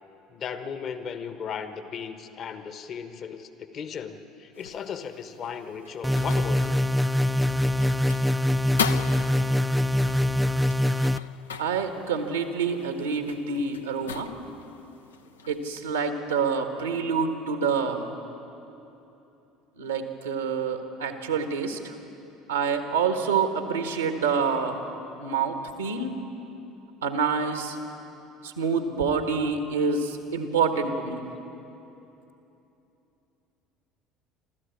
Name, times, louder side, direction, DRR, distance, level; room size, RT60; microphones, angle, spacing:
voice 1, 0.3-6.8, left 7 dB, 45° left, 10 dB, 1.2 m, -36 dB
sound 1, 4.5-15.8, left 7 dB, 80° left, 0.6 m, -39 dB
sound 2, 6.0-11.2, left 1 dB, 5° right, 0.5 m, -23 dB
voice 2, 11.6-14.3 15.5-18.1 19.8-21.9 22.5-24.8 25.2-26.2 27.0-27.8 28.4-31.2, right 5 dB, 80° right, 6 dB, 1.5 m, -27 dB
25.5 x 13.5 x 8.5 m, 3.0 s
figure-of-eight pair, 65°, 0 cm